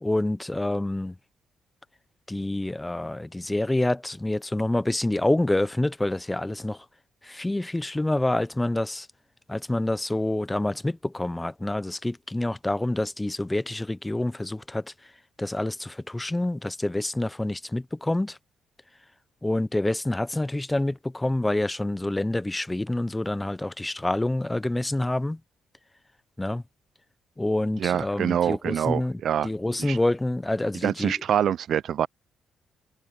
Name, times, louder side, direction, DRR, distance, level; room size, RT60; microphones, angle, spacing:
voice 1, 0.0-1.2 2.3-6.8 7.2-9.1 9.5-14.9 15.4-18.4 19.4-25.4 26.4-26.6 27.4-31.2, left 1 dB, 10° left, 0.6 m, -27 dB
voice 2, 27.8-29.5 29.8-30.0 30.8-32.1, right 9 dB, 65° right, 0.3 m, -25 dB
cardioid pair, 90°, 0 cm